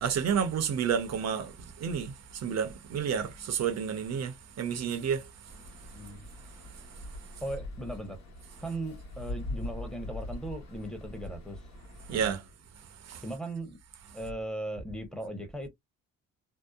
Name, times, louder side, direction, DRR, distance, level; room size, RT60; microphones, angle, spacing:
voice 1, 0.0-5.3 12.1-12.4 13.1-13.2, right 7 dB, 60° right, 0.7 m, -30 dB
sound 1, 5.5-12.3, left 1 dB, 65° left, 1.1 m, -42 dB
voice 2, 7.4-8.2 8.6-11.6 12.1-12.4 13.2-13.8 14.1-15.7, right 1 dB, ahead, 0.9 m, -38 dB
2.7 x 2.0 x 2.3 m
cardioid pair, 90°, 30 cm